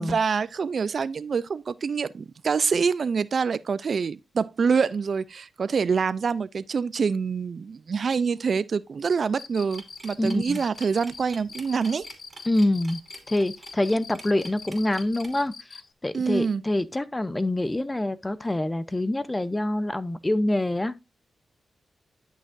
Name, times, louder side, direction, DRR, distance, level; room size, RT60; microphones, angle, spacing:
voice 1, 0.0-12.0 16.1-16.6, right 5 dB, 60° right, 0.4 m, -26 dB
Cricket, 9.3-15.9, left 5 dB, 60° left, 0.7 m, -43 dB
sound 1, 9.7-15.5, right 2 dB, 25° right, 2.6 m, -46 dB
voice 2, 10.2-10.6 12.5-13.0 13.3-21.0, left 1 dB, 15° left, 0.7 m, -26 dB
11.0 x 6.2 x 2.5 m
cardioid pair, 70°, 0 cm